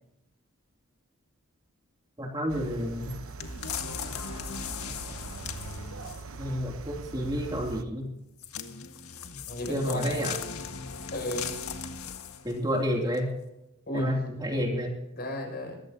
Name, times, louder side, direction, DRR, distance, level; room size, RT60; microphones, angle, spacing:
voice 1, 2.2-3.1 6.3-8.1 9.7-10.4 12.4-13.3 13.9-14.9, equal, 20° right, 0 dB, 2.8 m, -30 dB
sound 1, 2.5-7.8, right 4 dB, 70° right, 1.0 m, -42 dB
sound 2, 3.4-6.4 8.4-12.6 13.1-13.2, left 6 dB, 85° left, 1.7 m, -38 dB
voice 2, 9.5-10.3 11.1-11.5 13.9-14.2 15.1-15.8, left 1 dB, 45° left, 1 dB, 6.7 m, -33 dB
23.0 x 14.5 x 2.8 m, 0.85 s
head